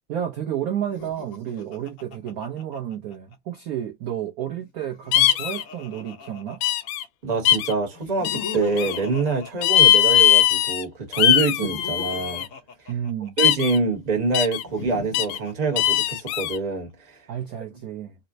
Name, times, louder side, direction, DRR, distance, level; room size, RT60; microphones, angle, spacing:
voice 1, 0.1-6.6 12.9-13.3 17.3-18.2, right 10 dB, 70° right, 0.8 m, -31 dB
Laughter, 0.8-3.4 4.7-7.1 7.9-10.5 11.3-13.7 14.6-16.5, left 5 dB, 60° left, 0.8 m, -39 dB
sound 1, 5.1-5.6 6.6-7.0 7.5-7.7 8.2-9.0 9.6-10.8 11.1-12.5 13.4-13.8 14.3-14.6 15.1-15.4 15.8-16.6, left 12 dB, 90° left, 1.6 m, -20 dB
voice 2, 7.2-12.5 13.4-17.2, right 3 dB, 25° right, 0.9 m, -25 dB
4.1 x 2.1 x 2.6 m
omnidirectional pair, 2.4 m